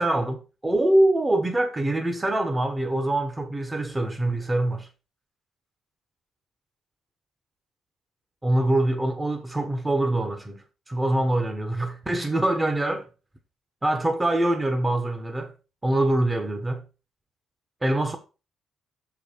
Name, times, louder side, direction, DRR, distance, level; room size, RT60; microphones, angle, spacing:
voice 1, 0.0-4.9 8.4-13.1 13.8-15.5 15.8-16.8 17.8-18.2, right 1 dB, 15° right, 1.1 m, -24 dB
6.4 x 4.8 x 5.1 m
cardioid pair, 90°, 0 cm